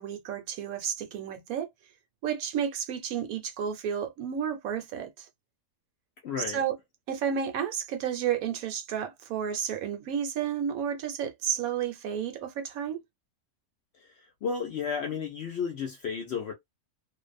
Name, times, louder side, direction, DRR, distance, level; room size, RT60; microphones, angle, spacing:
voice 1, 0.0-1.7 2.2-5.3 6.5-6.7 7.1-13.0, right 8 dB, 75° right, 1.0 m, -31 dB
voice 2, 6.2-6.6 14.4-16.5, left 6 dB, 65° left, 0.6 m, -32 dB
2.5 x 2.1 x 2.4 m
omnidirectional pair, 1.6 m